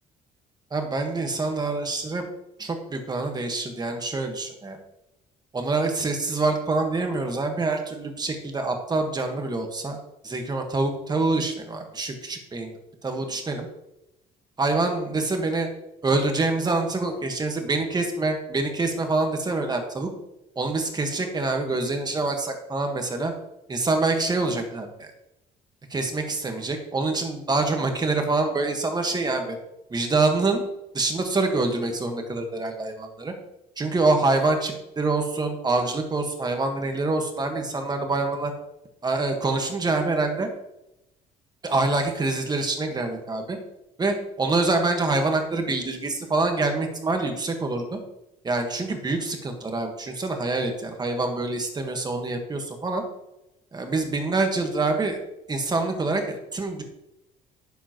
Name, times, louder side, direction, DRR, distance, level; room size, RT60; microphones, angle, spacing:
voice 1, 0.7-2.2 2.6-4.8 5.5-10.0 10.2-12.7 13.0-13.7 14.6-15.7 16.0-20.1 20.5-23.3 23.7-25.1 25.9-29.6 29.9-30.7 30.9-33.3 33.8-38.5 39.0-40.5 41.6-43.6 44.0-48.0 48.4-53.0 53.7-55.2 55.5-56.8, right 3 dB, 25° right, 4 dB, 1.6 m, -26 dB
9.9 x 7.4 x 3.1 m, 0.88 s
cardioid pair, 110°, 17 cm